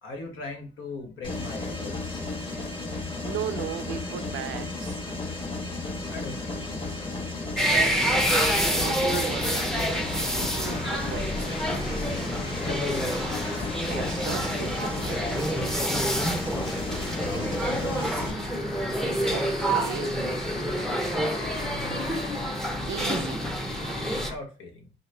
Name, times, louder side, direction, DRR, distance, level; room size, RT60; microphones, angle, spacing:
voice 1, 0.0-2.2 6.1-6.9 12.6-13.1 17.1-18.3 21.0-22.1 24.2-24.9, left 3 dB, 80° left, 1.1 m, -39 dB
Mechanisms, 1.2-18.3, left 3 dB, 25° left, 1.2 m, -34 dB
voice 2, 3.2-5.0 6.8-7.0 7.7-8.4 8.7-11.3 13.9-15.3 19.3-20.2 22.9-23.4, right 10 dB, 85° right, 0.5 m, -37 dB
sound 1, 7.6-24.4, left 2 dB, 50° left, 0.9 m, -39 dB
sound 2, 7.6-24.3, equal, ahead, 0.6 m, -28 dB
3.9 x 2.8 x 3.2 m
cardioid pair, 90°, 20 cm